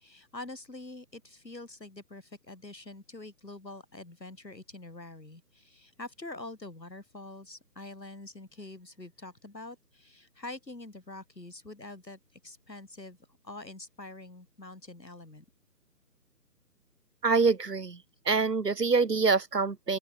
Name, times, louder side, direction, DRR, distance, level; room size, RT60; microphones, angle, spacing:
voice 1, 0.0-13.2 13.4-15.4, left 2 dB, 85° left, 4.9 m, -45 dB
voice 2, 17.2-18.0 18.3-20.0, right 4 dB, 70° right, 1.8 m, -25 dB
open air
figure-of-eight pair, 150°, 49 cm